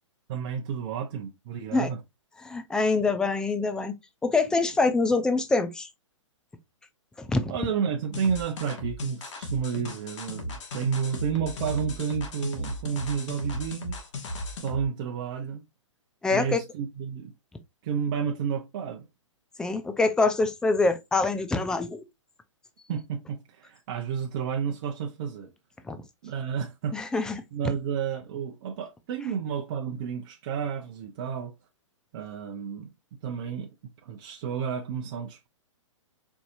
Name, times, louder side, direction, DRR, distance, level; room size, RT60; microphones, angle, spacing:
voice 1, 0.3-2.0 7.5-14.0 14.6-15.6 16.3-17.3 17.8-19.1 22.9-25.5 26.2-27.0 27.5-31.5 32.1-32.9 33.2-33.7 34.0-35.5, right 7 dB, 45° right, 0.7 m, -31 dB
voice 2, 2.4-3.9 4.2-5.9 7.3-7.5 16.2-16.6 19.6-22.0 25.9-26.0 26.9-27.4, left 3 dB, 5° left, 0.4 m, -25 dB
sound 1, 8.1-14.9, left 1 dB, 65° left, 1.1 m, -36 dB
4.6 x 2.7 x 2.5 m
hypercardioid pair, 140°, 16 cm